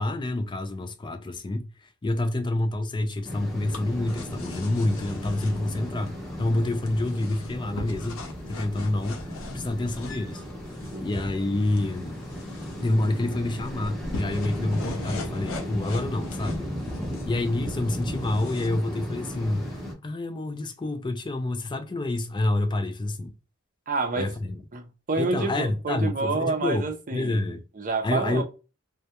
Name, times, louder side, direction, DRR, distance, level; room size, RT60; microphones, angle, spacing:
voice 1, 0.0-1.7 2.0-8.2 8.5-9.2 9.5-10.4 11.0-12.2 12.8-16.7 17.2-19.8 20.0-23.3 24.2-24.6 25.2-26.8 27.1-27.6 28.0-28.4, left 2 dB, 25° left, 0.4 m, -28 dB
sound 1, 3.2-18.7, left 2 dB, 70° left, 0.5 m, -42 dB
sound 2, 3.2-19.9, equal, ahead, 0.7 m, -36 dB
voice 2, 23.9-24.3 24.7-28.4, right 3 dB, 40° right, 0.6 m, -28 dB
2.2 x 2.1 x 2.8 m
head